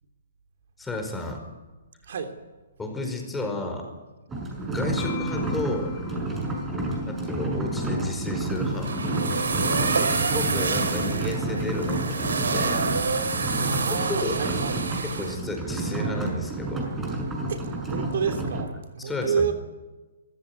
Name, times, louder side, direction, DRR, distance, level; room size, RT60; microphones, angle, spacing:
voice 1, 0.8-1.4 2.8-3.9 4.7-6.0 7.1-9.0 10.0-12.8 14.1-14.4 15.0-16.9 19.0-19.5, left 2 dB, 10° left, 3 dB, 4.9 m, -32 dB
sound 1, 4.3-18.6, right 2 dB, 15° right, 6.5 m, -30 dB
sound 2, 5.0-14.5, left 3 dB, 40° left, 4.1 m, -39 dB
sound 3, 8.5-15.3, right 4 dB, 80° right, 4.1 m, -28 dB
voice 2, 9.8-10.1 13.6-14.8 17.5-19.5, right 6 dB, 65° right, 5 dB, 3.2 m, -30 dB
24.0 x 15.0 x 9.7 m, 1.2 s
hypercardioid pair, 135°, 0 cm